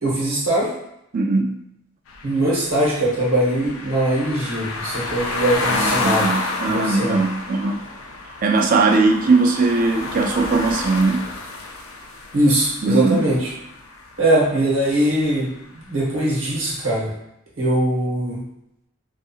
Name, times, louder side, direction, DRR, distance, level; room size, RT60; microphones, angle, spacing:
voice 1, 0.0-0.7 2.2-6.2 6.6-7.2 12.3-13.5 14.2-17.1 17.6-18.4, right 1 dB, 80° right, -5 dB, 1.1 m, -21 dB
voice 2, 1.1-1.6 5.7-7.8 8.4-11.3 12.8-13.3, right 3 dB, 45° right, 4 dB, 0.3 m, -19 dB
sound 1, 2.1-14.1, left 3 dB, 85° left, 0.4 m, -29 dB
2.7 x 2.4 x 2.4 m, 0.81 s
head